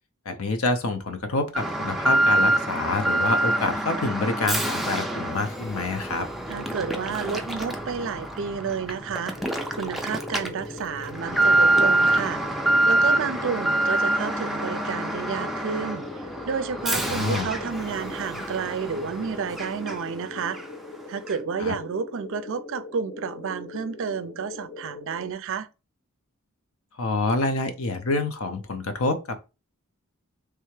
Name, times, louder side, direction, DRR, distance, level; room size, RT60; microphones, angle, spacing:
voice 1, 0.3-6.3 17.0-17.5 21.6-21.7 27.0-29.4, left 3 dB, 75° left, 0.7 m, -27 dB
Alarm, 1.5-20.2 20.5-20.6 21.3-21.4, right 1 dB, ahead, 0.4 m, -26 dB
voice 2, 6.5-9.3 9.7-12.4 12.9-16.1 16.5-20.6 21.1-25.7, right 6 dB, 65° right, 0.4 m, -31 dB
sound 1, 9.3-25.3, left 3 dB, 35° left, 0.7 m, -41 dB
3.4 x 3.3 x 3.2 m
head